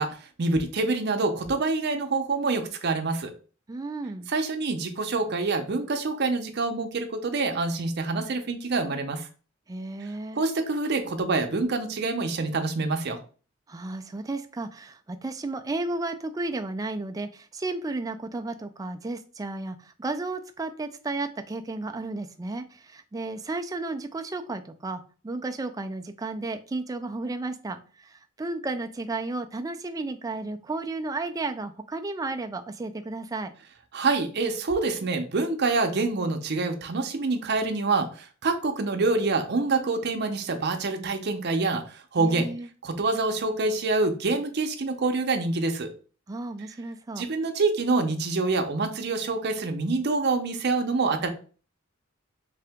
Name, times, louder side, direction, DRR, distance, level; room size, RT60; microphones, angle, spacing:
voice 1, 0.0-3.3 4.3-9.3 10.0-13.2 33.9-42.5 42.8-45.9 47.2-51.3, right 3 dB, 55° right, 6 dB, 0.6 m, -26 dB
voice 2, 3.7-4.3 9.7-10.4 13.7-33.5 42.2-42.7 46.3-47.3, right 2 dB, 15° right, 7 dB, 0.3 m, -33 dB
3.4 x 2.8 x 3.5 m, 0.38 s
head